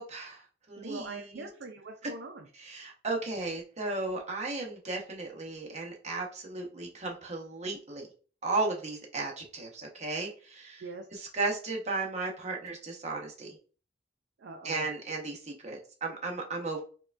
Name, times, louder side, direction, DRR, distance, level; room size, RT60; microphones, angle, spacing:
voice 1, 0.0-1.5 2.6-8.1 8.4-10.8 11.1-13.6 14.6-16.8, right 3 dB, 40° right, 1 dB, 0.8 m, -35 dB
voice 2, 0.8-2.5 10.8-11.1 14.4-14.9, right 3 dB, 75° right, 3 dB, 0.4 m, -42 dB
4.5 x 2.3 x 2.5 m, 0.39 s
head